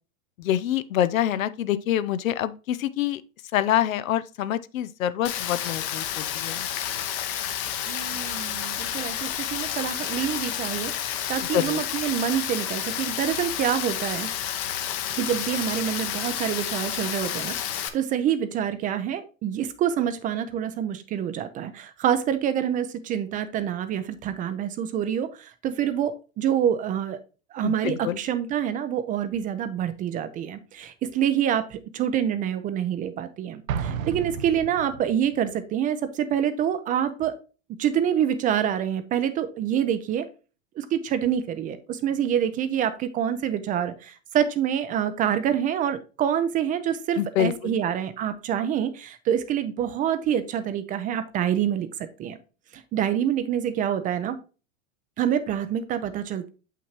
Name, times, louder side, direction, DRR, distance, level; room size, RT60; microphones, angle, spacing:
voice 1, 0.4-3.2 3.5-6.7 11.5-11.8 27.6-28.2 47.2-47.8, left 11 dB, 85° left, 0.6 m, -26 dB
Rain, 5.2-17.9, left 10 dB, 35° left, 0.8 m, -30 dB
voice 2, 7.9-14.3 15.1-27.2 27.5-37.4 37.8-40.3 40.8-51.9 52.2-52.4 52.9-54.4 55.2-56.5, right 9 dB, 20° right, 0.4 m, -26 dB
Explosion, 33.7-35.3, right 7 dB, 85° right, 0.7 m, -32 dB
7.1 x 5.8 x 3.0 m
hypercardioid pair, 120°, 39 cm